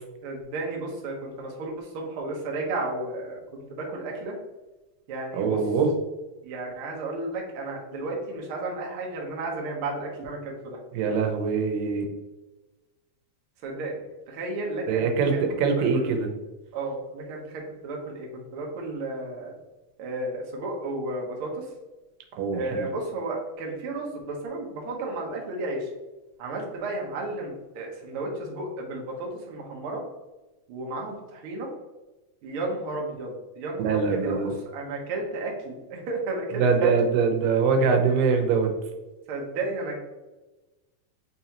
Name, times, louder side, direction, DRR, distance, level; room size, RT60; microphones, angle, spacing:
voice 1, 0.2-4.4 5.1-5.6 6.4-10.8 13.6-14.0 14.3-15.1 15.3-15.4 15.7-16.1 16.7-19.5 20.0-21.7 22.5-25.9 26.4-30.0 30.7-31.7 32.4-36.9 39.3-40.0, right 2 dB, 70° right, -1 dB, 1.3 m, -33 dB
voice 2, 5.3-5.9 10.9-12.0 14.9-16.3 22.4-22.9 33.8-34.5 36.6-38.7, right 5 dB, 90° right, 3 dB, 2.4 m, -23 dB
4.5 x 4.1 x 2.9 m, 1.1 s
omnidirectional pair, 3.8 m